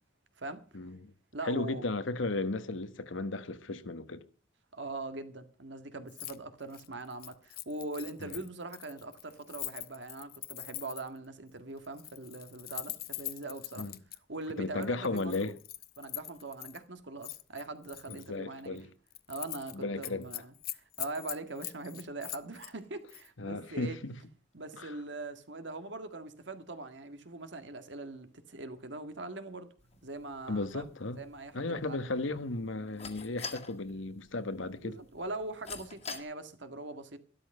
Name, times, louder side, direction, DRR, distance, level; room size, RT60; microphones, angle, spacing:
voice 1, 0.7-1.1 1.4-4.2 8.2-8.3 13.8-13.9 14.6-15.6 18.1-18.9 19.7-20.3 23.4-24.1 24.8-24.9 30.5-31.2 31.5-35.0, left 2 dB, 80° left, 1.2 m, -35 dB
voice 2, 1.3-1.8 4.7-13.9 14.3-15.5 16.0-18.8 19.3-24.0 24.5-29.7 30.0-30.9 31.2-32.1 34.8-37.2, right 2 dB, 65° right, 1.7 m, -42 dB
Keys jangling, 6.1-6.4 6.6-11.2 11.8-14.2 14.8-16.8 17.2-18.3 18.7-18.8 19.1-19.7 20.0-22.7 23.1-23.3, left 15 dB, 50° left, 0.8 m, -43 dB
sound 1, 29.8-36.2, left 5 dB, 35° left, 1.9 m, -48 dB
13.0 x 12.5 x 5.4 m
head